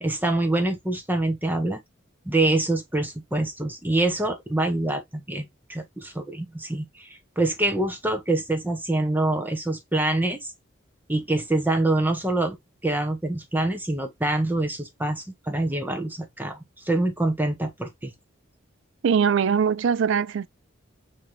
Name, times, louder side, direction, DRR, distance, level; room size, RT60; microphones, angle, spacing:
voice 1, 0.0-1.8 2.3-10.5 11.1-12.6 12.8-18.1, right 2 dB, 10° right, 0.8 m, -25 dB
voice 2, 19.0-20.5, right 7 dB, 65° right, 0.3 m, -21 dB
5.7 x 2.9 x 3.1 m
head